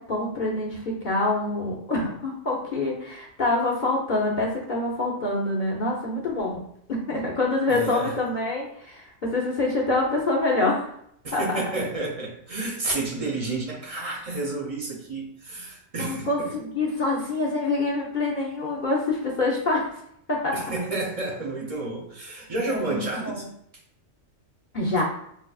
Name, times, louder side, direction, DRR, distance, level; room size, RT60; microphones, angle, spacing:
voice 1, 0.0-6.6 6.9-10.9 11.3-11.6 16.0-19.9 20.3-20.5 22.7-23.4 24.7-25.0, left 2 dB, 50° left, -3 dB, 0.6 m, -26 dB
voice 2, 7.7-8.2 11.2-16.5 20.5-23.5, right 2 dB, 40° right, -2 dB, 0.5 m, -30 dB
4.8 x 2.3 x 2.3 m, 0.71 s
omnidirectional pair, 1.4 m